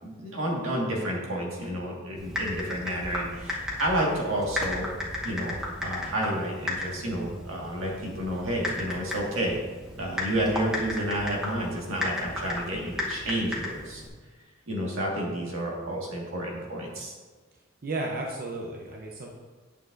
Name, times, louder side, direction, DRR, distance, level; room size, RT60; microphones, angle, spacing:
voice 1, 0.0-4.9 5.2-5.6 5.8-9.6 10.0-14.0 14.7-17.2, right 1 dB, 85° right, -2 dB, 1.7 m, -30 dB
Typing, 2.2-14.1, left 1 dB, 5° right, 1.0 m, -35 dB
voice 2, 17.8-19.3, right 2 dB, 45° right, 0 dB, 0.6 m, -33 dB
8.8 x 7.1 x 2.6 m, 1.4 s
head